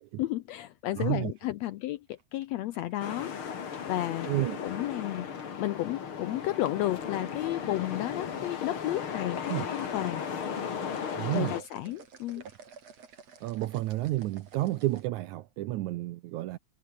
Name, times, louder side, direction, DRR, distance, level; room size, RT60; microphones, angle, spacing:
voice 1, 0.2-4.3 4.6-10.2 11.3-12.4, left 15 dB, 85° left, 1.5 m, -33 dB
sound 1, 1.0-3.1 4.6-5.0 5.4-5.8 6.8-7.3 7.6-7.8 8.3-8.4 9.1-15.1, right 6 dB, 50° right, 4.3 m, -53 dB
voice 2, 1.0-1.3 4.3-4.6 9.5-9.7 11.1-11.5 13.4-16.6, right 16 dB, 75° right, 2.0 m, -31 dB
sound 2, 3.0-11.6, left 7 dB, 45° left, 2.7 m, -36 dB
omnidirectional pair, 3.7 m